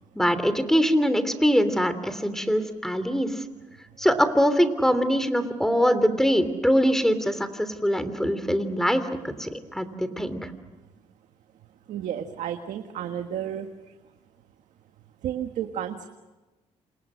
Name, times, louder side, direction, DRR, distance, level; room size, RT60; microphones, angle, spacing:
voice 1, 0.1-3.4 4.0-10.5, equal, 5° left, 11 dB, 3.1 m, -23 dB
voice 2, 11.9-13.7 15.2-16.1, right 10 dB, 85° right, 6 dB, 1.6 m, -32 dB
28.5 x 28.0 x 6.4 m, 1.2 s
cardioid pair, 95°, 13 cm